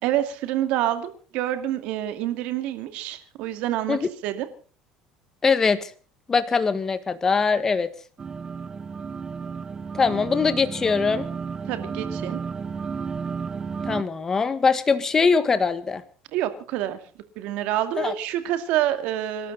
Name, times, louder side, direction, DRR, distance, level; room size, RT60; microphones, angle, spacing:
voice 1, 0.0-4.0 4.2-4.5 11.7-12.4 16.3-17.0 17.4-19.5, right 12 dB, 70° right, 10 dB, 2.3 m, -27 dB
voice 2, 5.4-5.9 6.3-7.9 9.9-11.3 13.8-16.0 18.0-18.1, left 5 dB, 25° left, 13 dB, 1.5 m, -22 dB
sound 1, 8.2-14.0, right 5 dB, 30° right, 1.0 m, -32 dB
26.5 x 12.5 x 4.0 m, 0.40 s
supercardioid pair, 115°, 2 cm